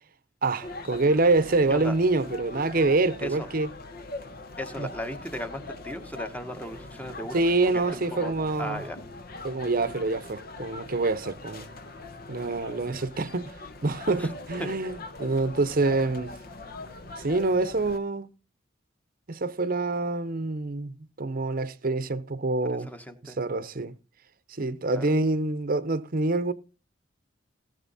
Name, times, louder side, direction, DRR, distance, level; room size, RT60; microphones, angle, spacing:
voice 1, 0.4-3.7 4.8-4.9 7.3-8.8 9.4-11.7 12.3-13.5 13.8-16.4 17.2-18.3 19.3-22.9 23.2-23.9 24.6-26.5, right 2 dB, 50° right, 0.8 m, -26 dB
sound 1, 0.6-18.0, left 2 dB, 55° left, 1.0 m, -41 dB
voice 2, 4.6-8.3 8.6-9.0 14.2-14.3 14.6-14.7 22.7-23.4 24.9-25.1, equal, 10° left, 1.2 m, -37 dB
17.5 x 6.8 x 4.1 m
head